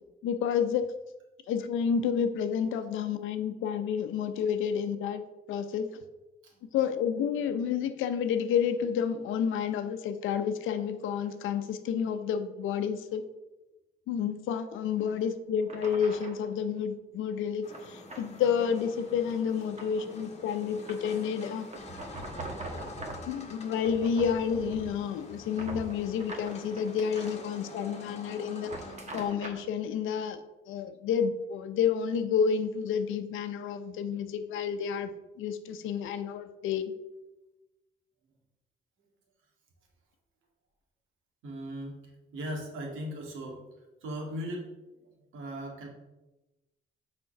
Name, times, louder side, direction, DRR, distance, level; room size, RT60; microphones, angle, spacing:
voice 1, 0.2-0.8 1.5-5.2 5.5-5.9 6.7-13.2 14.1-21.7 23.3-28.7 29.1-30.4 30.7-36.9, left 7 dB, 90° left, 9 dB, 0.7 m, -30 dB
sound 1, 15.0-15.1 15.7-16.5 17.7-18.3 18.6-18.9 19.3-20.2 20.9-21.2 21.7-23.3 23.8-25.0 25.3-27.3 28.5-29.6, right 2 dB, 35° right, 1.4 m, -42 dB
sound 2, 17.6-29.2, left 2 dB, 35° left, 1.3 m, -47 dB
voice 2, 41.4-43.6 44.0-44.7 45.0-45.9, equal, 85° right, 1 dB, 1.9 m, -38 dB
6.3 x 4.3 x 5.8 m, 1.0 s
cardioid pair, 90°, 20 cm